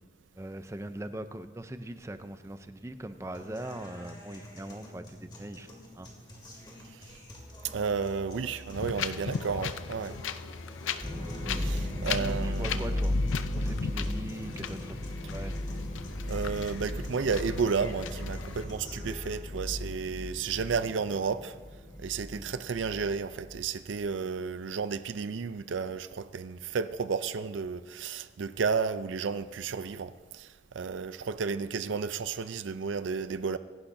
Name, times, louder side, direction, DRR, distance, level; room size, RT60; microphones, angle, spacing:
voice 1, 0.4-5.7 6.0-6.1 11.5-15.6 22.3-22.5, right 1 dB, 15° right, 0.5 m, -41 dB
sound 1, 3.3-19.3, left 1 dB, 20° left, 2.3 m, -47 dB
voice 2, 7.7-10.2 11.5-13.1 16.3-21.5 22.0-33.6, right 5 dB, 75° right, 0.5 m, -32 dB
Wind, 8.7-18.6, left 6 dB, 90° left, 0.5 m, -38 dB
sound 2, 11.0-23.9, left 1 dB, 5° left, 3.4 m, -35 dB
24.0 x 11.5 x 2.7 m
head